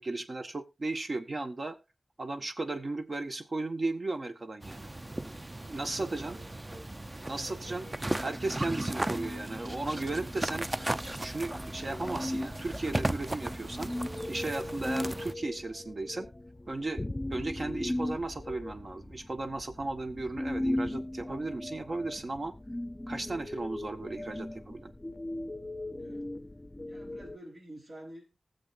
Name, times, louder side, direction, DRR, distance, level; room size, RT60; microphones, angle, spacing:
voice 1, 0.0-1.8 2.2-4.9 5.7-6.4 7.3-7.8 8.2-10.7 11.2-13.9 14.2-16.3 16.7-17.0 17.3-22.5 23.1-24.9, right 2 dB, 60° right, 7 dB, 1.4 m, -35 dB
sound 1, 4.6-15.3, right 1 dB, 25° right, 0.5 m, -36 dB
voice 2, 5.8-6.9 7.3-8.4 9.0-9.2 26.0-26.3 26.9-28.4, right 1 dB, 75° right, -1 dB, 4.0 m, -50 dB
sound 2, 8.2-27.4, left 1 dB, 25° left, 0.5 m, -38 dB
20.0 x 7.3 x 2.6 m, 0.26 s
wide cardioid pair, 65°, 0 cm